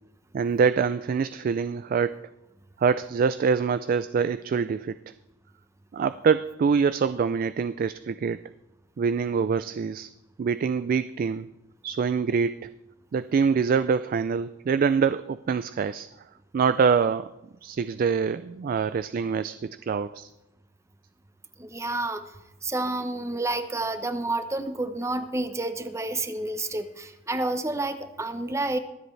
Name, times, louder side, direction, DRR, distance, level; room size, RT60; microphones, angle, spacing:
voice 1, 0.3-2.3 2.8-5.0 5.9-8.4 9.0-10.1 10.4-11.5 11.8-12.7 13.1-16.1 16.5-17.3 17.6-20.3, right 6 dB, 45° right, 13 dB, 0.3 m, -25 dB
voice 2, 21.6-22.2 22.6-28.8, right 2 dB, 15° right, 10 dB, 0.7 m, -29 dB
23.5 x 8.0 x 3.2 m, 0.96 s
head